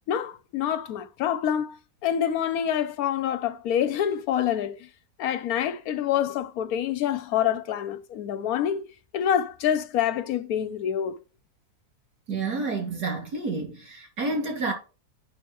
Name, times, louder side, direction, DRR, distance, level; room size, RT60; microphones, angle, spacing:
voice 1, 0.1-4.9 5.2-8.8 9.1-11.2, left 9 dB, 70° left, 1.1 m, -26 dB
voice 2, 12.3-14.7, right 3 dB, 80° right, 3.0 m, -29 dB
11.0 x 5.6 x 3.1 m
omnidirectional pair, 1.7 m